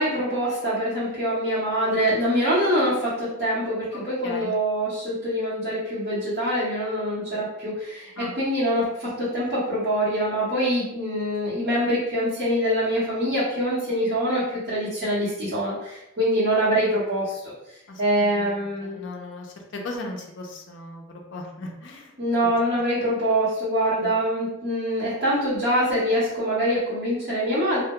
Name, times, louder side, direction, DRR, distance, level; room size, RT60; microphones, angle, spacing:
voice 1, 0.0-17.5 18.0-19.0 22.2-27.8, equal, 45° right, -13 dB, 0.8 m, -24 dB
voice 2, 3.9-4.6 8.2-8.3 17.9-18.0 18.4-19.5 19.7-22.1 24.0-24.2, left 2 dB, 60° left, 1 dB, 0.4 m, -37 dB
2.2 x 2.1 x 2.9 m, 0.88 s
head